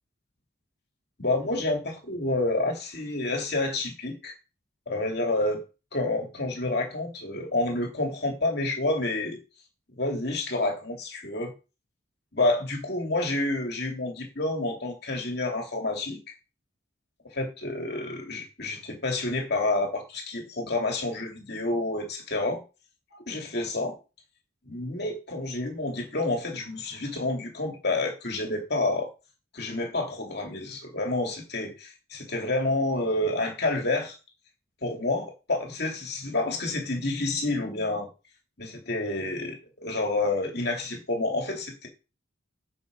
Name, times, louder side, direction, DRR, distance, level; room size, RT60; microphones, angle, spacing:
voice 1, 1.2-4.3 4.9-5.6 5.9-9.4 10.0-11.5 12.3-16.2 17.3-22.6 23.1-24.0 24.7-29.1 29.5-34.1 34.8-38.1 38.6-41.9, left 2 dB, 55° left, 2 dB, 2.6 m, -29 dB
8.7 x 6.3 x 5.3 m, 0.30 s
head